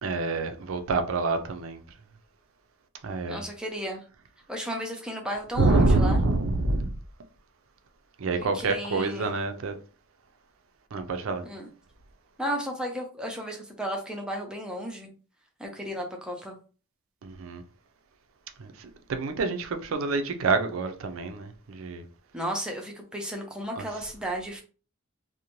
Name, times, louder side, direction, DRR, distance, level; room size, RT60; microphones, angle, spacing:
voice 1, 0.0-1.8 3.0-3.4 5.6-6.9 8.2-9.7 10.9-11.4 17.2-17.6 18.6-22.0, right 3 dB, 65° right, 0.4 m, -26 dB
voice 2, 3.3-4.0 4.5-6.2 8.3-9.4 11.4-11.7 12.4-15.1 15.6-16.5 22.3-24.6, equal, 5° right, 0.5 m, -34 dB
2.6 x 2.1 x 2.9 m
head